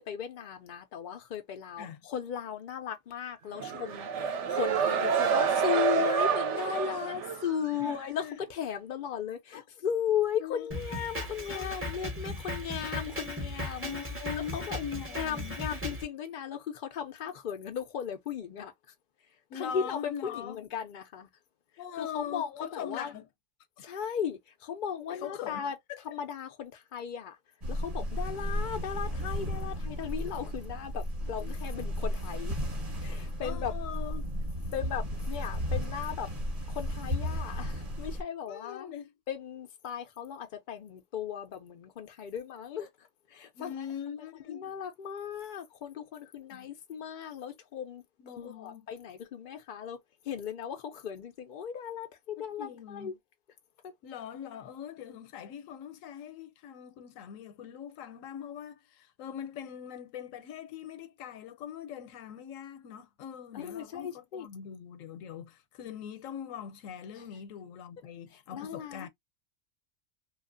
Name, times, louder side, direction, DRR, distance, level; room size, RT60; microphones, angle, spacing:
voice 1, 0.0-13.9 14.5-14.8 15.1-18.7 19.5-21.3 21.9-23.1 23.8-25.8 26.1-27.4 27.7-32.6 33.0-33.7 34.7-36.3 36.7-38.9 39.3-42.9 43.3-43.9 44.5-48.0 48.3-50.0 50.3-53.1 63.5-64.5 68.5-69.1, left 8 dB, 65° left, 0.5 m, -36 dB
sound 1, 3.6-8.1, right 6 dB, 65° right, 0.9 m, -28 dB
voice 2, 7.8-8.4 9.5-9.6 10.4-10.7 11.4-11.8 13.8-15.6 19.5-20.6 21.8-23.3 25.1-26.0 31.2-31.5 33.4-34.3 38.5-39.1 43.5-44.7 46.5-46.7 48.2-48.9 52.4-53.1 54.0-69.1, left 9 dB, 80° left, 1.0 m, -42 dB
Drum kit, 10.7-16.0, left 1 dB, 15° right, 0.6 m, -37 dB
sound 2, 27.6-38.2, equal, 30° right, 1.1 m, -34 dB
2.8 x 2.4 x 2.4 m
omnidirectional pair, 1.3 m